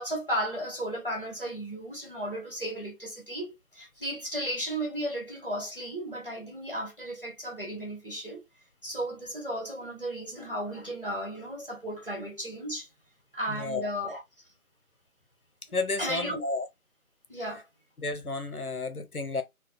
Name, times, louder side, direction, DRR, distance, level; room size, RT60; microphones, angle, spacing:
voice 1, 0.0-8.4 8.8-12.9 13.3-14.2 16.0-16.4 17.3-17.6, right 1 dB, 35° left, 1.7 m, -34 dB
voice 2, 13.5-13.9 15.7-16.7 18.0-19.4, left 3 dB, 75° left, 0.9 m, -32 dB
3.4 x 2.4 x 4.0 m
figure-of-eight pair, 180°, 45 cm